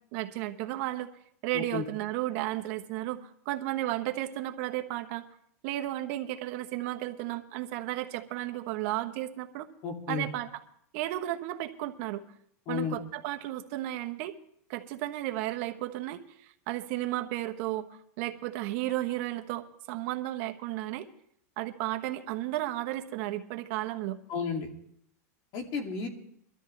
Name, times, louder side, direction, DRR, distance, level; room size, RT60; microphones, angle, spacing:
voice 1, 0.1-1.1 1.4-5.2 5.6-9.7 10.1-10.5 10.9-12.2 12.7-14.3 14.7-21.1 21.6-24.2, right 15 dB, 50° right, 8 dB, 1.1 m, -33 dB
voice 2, 1.5-1.8 9.8-10.3 12.7-13.0 24.3-24.7 25.5-26.1, left 5 dB, 45° left, 3 dB, 2.6 m, -32 dB
23.0 x 13.0 x 3.3 m, 0.67 s
supercardioid pair, 145°, 9 cm